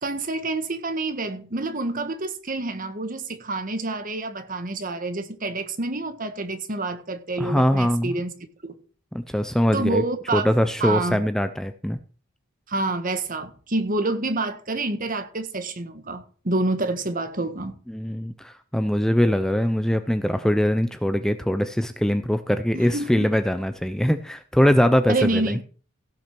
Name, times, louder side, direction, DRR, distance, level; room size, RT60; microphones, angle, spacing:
voice 1, 0.0-8.3 8.6-8.8 9.7-10.5 10.8-11.2 12.7-17.8 22.7-23.3 25.1-25.6, right 2 dB, 45° right, 1.6 m, -28 dB
voice 2, 7.4-8.1 9.1-10.0 10.3-12.0 17.9-25.6, equal, 5° left, 0.6 m, -22 dB
16.5 x 6.2 x 6.0 m
head